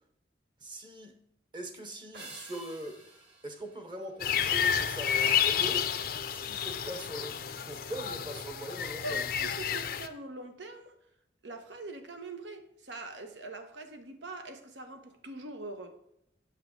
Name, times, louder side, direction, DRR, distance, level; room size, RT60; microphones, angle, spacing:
voice 1, 0.6-1.2 1.5-5.9 6.2-9.3, right 1 dB, 25° right, 0.9 m, -42 dB
sound 1, 2.1-4.8, right 2 dB, 65° right, 2.3 m, -51 dB
sound 2, 4.2-10.1, left 8 dB, 55° left, 0.5 m, -30 dB
voice 2, 9.0-11.0 11.4-16.0, right 2 dB, 80° right, 1.1 m, -43 dB
8.6 x 6.7 x 3.6 m
head